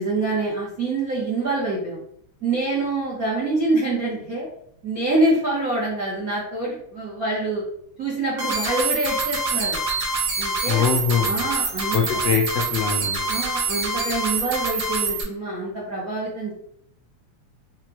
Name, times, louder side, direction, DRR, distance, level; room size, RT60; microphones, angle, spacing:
voice 1, 0.0-2.0 2.4-4.5 4.8-7.6 8.0-9.8 10.4-10.8 11.3-12.0 13.3-16.5, right 2 dB, 85° right, -7 dB, 0.7 m, -25 dB
sound 1, 8.4-15.2, right 3 dB, 65° right, 1.3 m, -25 dB
voice 2, 10.7-11.4 11.9-13.4, left 6 dB, 85° left, 1 dB, 1.4 m, -23 dB
5.7 x 2.3 x 2.9 m, 0.69 s
omnidirectional pair, 3.3 m